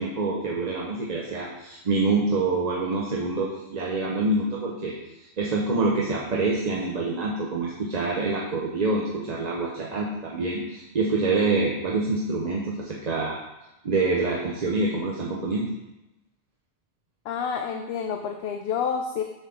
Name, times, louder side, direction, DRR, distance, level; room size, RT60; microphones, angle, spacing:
voice 1, 0.0-13.4 13.8-15.7, right 3 dB, 40° right, -3 dB, 0.9 m, -26 dB
voice 2, 17.3-19.2, left 6 dB, 75° left, 4 dB, 0.8 m, -29 dB
7.4 x 6.7 x 3.5 m, 0.95 s
omnidirectional pair, 1.1 m